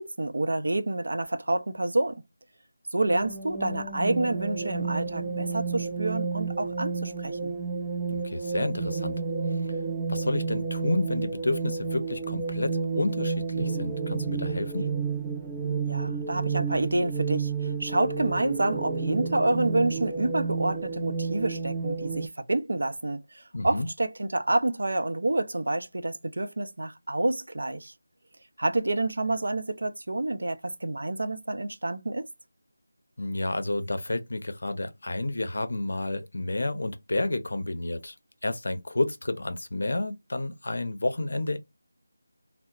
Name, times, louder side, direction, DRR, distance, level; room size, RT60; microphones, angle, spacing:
voice 1, 0.0-2.2 2.9-7.5 15.9-27.9 28.6-32.3, right 2 dB, 75° right, 0.5 m, -28 dB
sound 1, 3.1-22.3, right 4 dB, 10° right, 0.3 m, -31 dB
voice 2, 8.1-9.2 10.1-14.9 23.5-23.9 33.2-38.2 38.4-41.6, left 2 dB, 65° left, 0.5 m, -30 dB
2.8 x 2.0 x 2.3 m
figure-of-eight pair, 170°, 0 cm